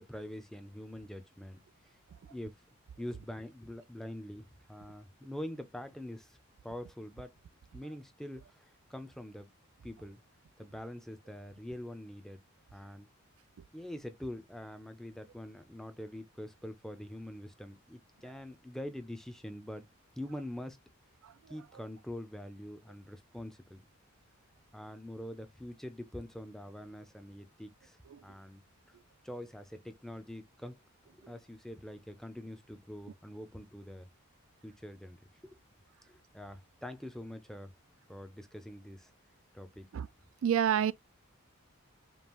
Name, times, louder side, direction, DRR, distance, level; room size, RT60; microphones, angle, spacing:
voice 1, 0.0-1.6 1.8-2.0 2.3-2.5 3.0-6.4 6.6-7.3 7.7-9.5 9.8-10.2 10.6-12.4 12.7-13.1 13.7-19.9 20.2-20.8 21.5-23.8 24.7-28.6 28.9-29.0 29.2-30.8 31.3-34.1 34.6-35.6 36.0-37.7 38.1-39.1 39.5-39.9, left 1 dB, ahead, 0.5 m, -44 dB
voice 2, 40.4-40.9, right 9 dB, 70° right, 0.3 m, -27 dB
5.3 x 2.4 x 3.0 m
head